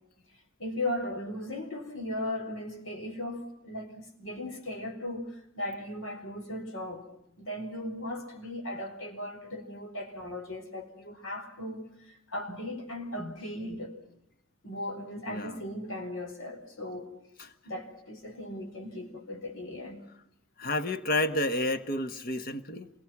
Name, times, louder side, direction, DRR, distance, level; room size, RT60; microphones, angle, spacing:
voice 1, 0.6-7.1 7.4-14.0 14.6-17.1 17.6-20.0, left 1 dB, 75° left, 5.0 m, -37 dB
voice 2, 15.3-15.6 17.4-17.5 20.6-22.9, left 1 dB, 45° left, 1.4 m, -30 dB
28.0 x 22.0 x 6.1 m
head